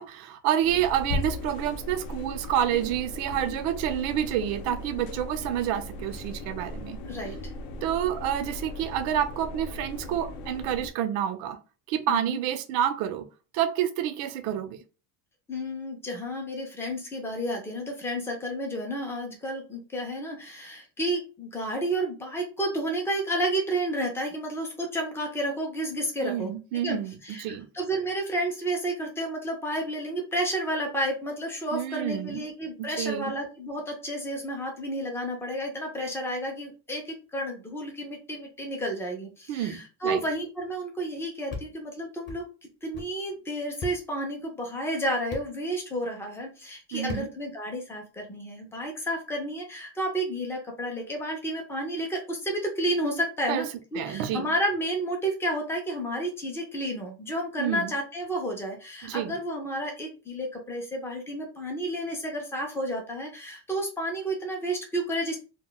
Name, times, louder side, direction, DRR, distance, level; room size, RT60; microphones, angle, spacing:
voice 1, 0.0-7.0 7.8-11.6 11.9-13.3 13.5-14.8 26.2-27.7 31.7-32.4 32.8-33.3 39.5-40.2 46.9-47.3 53.5-53.6 53.9-54.5 57.6-57.9 59.0-59.4, right 10 dB, 80° right, 10 dB, 0.7 m, -28 dB
sound 1, 0.6-10.9, left 2 dB, 60° left, 0.6 m, -37 dB
voice 2, 7.0-7.3 12.1-12.4 15.5-42.4 42.8-65.4, right 1 dB, 5° left, 0 dB, 0.3 m, -31 dB
sound 2, 41.5-41.7 42.3-42.4 42.9-43.1 43.8-44.0 45.3-45.5 47.1-47.3, left 3 dB, 25° left, 0.7 m, -36 dB
2.2 x 2.2 x 3.8 m, 0.34 s
cardioid pair, 160°, 48 cm